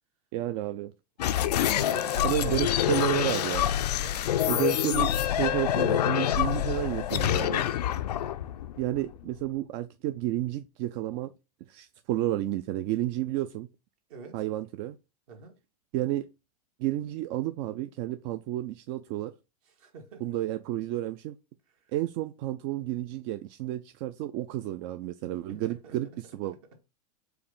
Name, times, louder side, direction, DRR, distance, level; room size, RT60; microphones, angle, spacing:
voice 1, 0.3-0.9 2.2-3.7 4.5-7.7 8.8-11.3 11.7-13.7 14.3-15.0 15.9-16.3 16.8-19.3 20.2-21.4 21.9-26.6, right 14 dB, 45° right, 0.4 m, -31 dB
sound 1, 1.2-9.4, left 11 dB, 80° left, 0.4 m, -26 dB
voice 2, 1.4-2.6 4.0-4.8 5.4-5.8 14.1-14.4 15.3-15.5 19.8-20.2 25.5-25.9, right 5 dB, 65° right, 1.5 m, -45 dB
4.7 x 2.6 x 3.4 m
hypercardioid pair, 105°, 20 cm